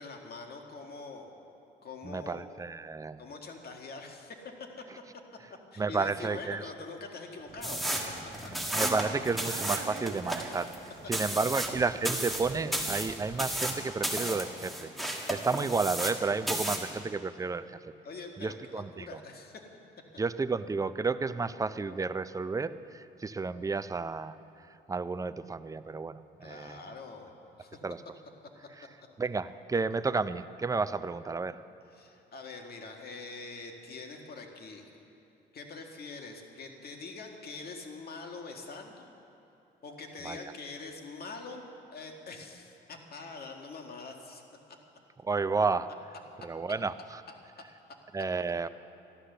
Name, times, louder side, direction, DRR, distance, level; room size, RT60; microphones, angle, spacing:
voice 1, 0.0-1.3 1.8-2.5 3.2-4.4 5.7-8.0 10.4-10.5 18.0-19.6 26.4-27.3 27.6-27.8 31.9-34.9 35.5-39.1 39.8-44.4, left 3 dB, 50° left, 2 dB, 1.9 m, -44 dB
voice 2, 2.0-3.2 5.8-6.6 8.7-10.7 11.1-14.9 15.3-17.9 18.4-19.2 20.2-24.4 24.9-26.8 27.8-28.0 29.2-31.6 40.2-40.4 45.2-45.9 46.4-47.2 48.1-48.7, right 4 dB, 15° right, 13 dB, 0.5 m, -31 dB
sound 1, 7.5-13.8, right 8 dB, 80° right, 0.8 m, -47 dB
sound 2, 7.6-16.2 16.5-16.9, right 1 dB, ahead, 1.7 m, -33 dB
13.0 x 11.5 x 6.7 m, 2.8 s
cardioid pair, 90°, 20 cm